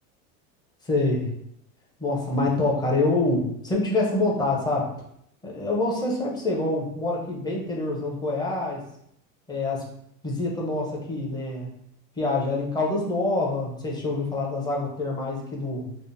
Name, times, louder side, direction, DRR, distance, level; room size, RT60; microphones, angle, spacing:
voice 1, 0.8-1.3 2.0-4.9 5.4-8.8 9.5-9.9 10.2-11.7 12.2-15.9, left 2 dB, 10° left, -2 dB, 0.5 m, -26 dB
3.5 x 2.0 x 2.5 m, 0.73 s
supercardioid pair, 125°, 41 cm